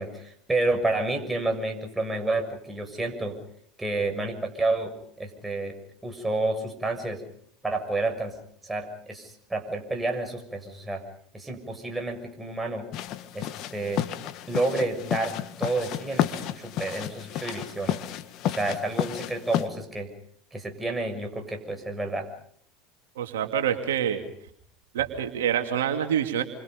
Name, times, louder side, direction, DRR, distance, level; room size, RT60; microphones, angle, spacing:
voice 1, 0.0-3.4 3.8-5.7 6.0-7.2 7.6-8.3 8.6-11.0 11.3-12.8 13.3-14.0 14.5-18.0 18.4-20.1 20.5-22.3, right 2 dB, 10° right, 4 dB, 6.8 m, -30 dB
sound 1, 12.9-19.7, left 12 dB, 55° left, 1.8 m, -31 dB
voice 2, 23.2-24.2 24.9-26.4, right 9 dB, 80° right, 5 dB, 2.7 m, -26 dB
29.5 x 25.5 x 5.3 m, 0.62 s
hypercardioid pair, 85°, 0 cm